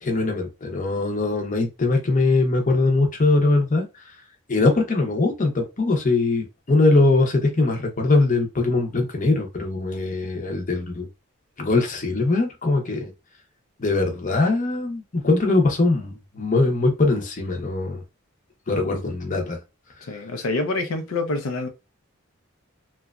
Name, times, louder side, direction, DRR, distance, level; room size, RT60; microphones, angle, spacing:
voice 1, 0.0-4.0 4.5-11.1 11.6-13.1 13.8-18.0 18.7-19.6, left 3 dB, 40° left, 0.7 m, -21 dB
voice 2, 20.1-21.7, left 2 dB, 85° left, 0.5 m, -26 dB
2.9 x 2.2 x 2.3 m
head